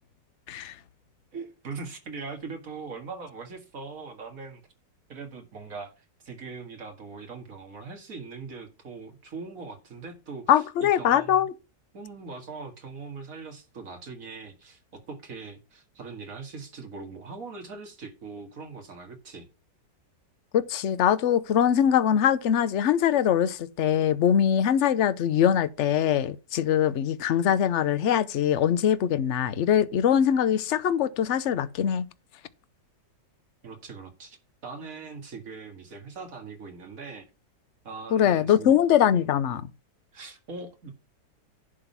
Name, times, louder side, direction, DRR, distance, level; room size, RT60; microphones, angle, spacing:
voice 1, 1.3-4.6 5.1-11.4 11.9-19.5 33.6-34.4 34.6-37.3 37.8-38.8 40.1-40.9, right 4 dB, 50° right, 2.3 m, -41 dB
voice 2, 10.5-11.5 20.5-32.1 38.1-39.7, left 9 dB, 60° left, 0.8 m, -22 dB
11.0 x 3.8 x 7.2 m
omnidirectional pair, 1.9 m